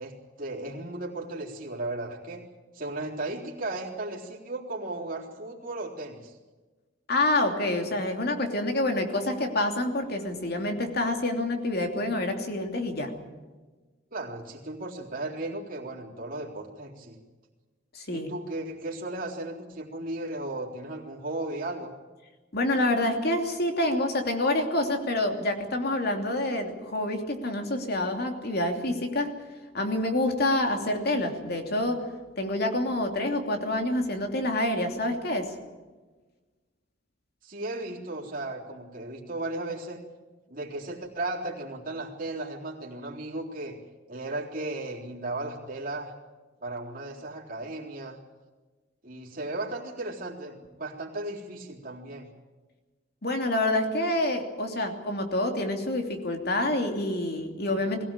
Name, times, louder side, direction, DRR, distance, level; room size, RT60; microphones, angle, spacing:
voice 1, 0.0-2.5 2.7-6.4 14.1-17.2 18.1-21.9 37.4-40.0 40.5-43.8 44.1-46.1 46.6-48.2 49.0-52.3, right 2 dB, 50° right, -3 dB, 3.8 m, -35 dB
voice 2, 7.1-13.1 17.9-18.3 22.5-29.3 29.7-32.0 32.4-35.5 53.2-58.0, left 1 dB, 55° left, 4 dB, 3.0 m, -27 dB
22.0 x 17.0 x 8.9 m, 1.3 s
head